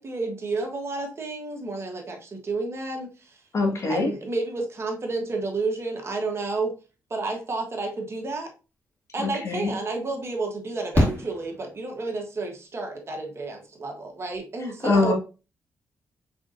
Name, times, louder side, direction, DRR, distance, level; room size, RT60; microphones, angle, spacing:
voice 1, 0.0-3.4 3.9-6.7 7.1-8.5 9.1-15.1, right 3 dB, 45° right, 2 dB, 1.4 m, -31 dB
voice 2, 3.5-4.1 9.2-9.7 14.8-15.1, left 3 dB, 50° left, 1 dB, 1.7 m, -23 dB
Fireworks, 9.3-9.4 10.9-12.3 14.0-14.1 14.3-14.4, left 1 dB, 30° left, 2.3 m, -26 dB
5.0 x 3.7 x 2.6 m, 0.32 s
cardioid pair, 65°, 6 cm